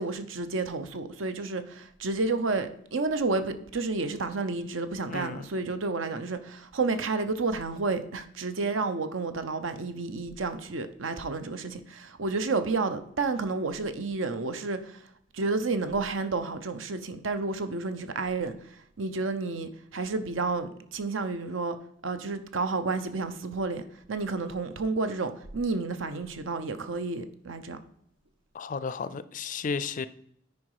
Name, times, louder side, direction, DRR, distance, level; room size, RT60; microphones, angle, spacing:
voice 1, 0.0-15.0 15.3-21.8 22.0-23.8 24.1-27.8, right 3 dB, 75° right, 0.8 m, -31 dB
voice 2, 5.1-5.5 28.5-30.1, left 5 dB, 40° left, 0.4 m, -33 dB
9.5 x 4.8 x 4.8 m
head